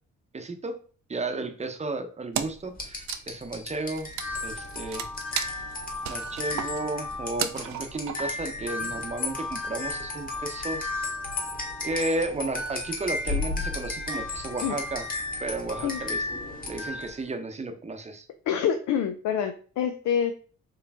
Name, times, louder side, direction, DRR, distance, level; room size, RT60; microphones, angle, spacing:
voice 1, 0.3-0.8 1.1-4.1 4.4-5.1 6.1-11.1 11.8-15.0 15.4-16.4 16.7-18.3, right 2 dB, 20° right, 7 dB, 0.7 m, -33 dB
Wood, 2.3-2.7 3.0-8.6, right 9 dB, 65° right, 0.6 m, -35 dB
sound 1, 2.8-17.2, left 3 dB, 30° left, 1.5 m, -33 dB
voice 2, 18.5-20.3, left 8 dB, 70° left, 6 dB, 0.6 m, -26 dB
4.7 x 3.1 x 3.5 m, 0.40 s
cardioid pair, 90°, 30 cm